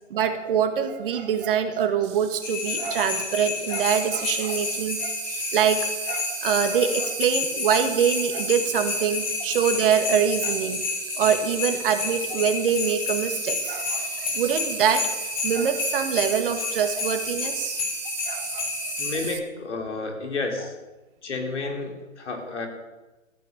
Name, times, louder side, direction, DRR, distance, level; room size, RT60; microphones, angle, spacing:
voice 1, 0.1-10.8 11.2-15.1 15.4-17.8 18.3-18.7, right 8 dB, 45° right, 8 dB, 2.0 m, -24 dB
Insect, 2.0-19.4, right 14 dB, 25° right, 0.9 m, -36 dB
sound 1, 2.4-19.3, left 5 dB, 35° left, 3.5 m, -30 dB
voice 2, 19.0-20.7 21.2-22.7, left 3 dB, 65° left, 3 dB, 4.3 m, -31 dB
14.5 x 9.5 x 9.8 m, 1.1 s
figure-of-eight pair, 130°, 38 cm